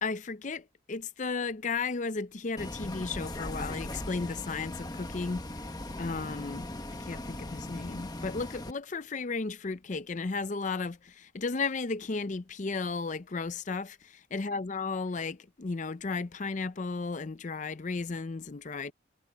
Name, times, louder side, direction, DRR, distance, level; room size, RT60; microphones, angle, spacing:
voice 1, 0.0-5.4 6.0-6.7 7.0-18.9, left 4 dB, 40° left, 0.5 m, -34 dB
Bus, 2.6-8.7, left 1 dB, 20° left, 1.1 m, -39 dB
head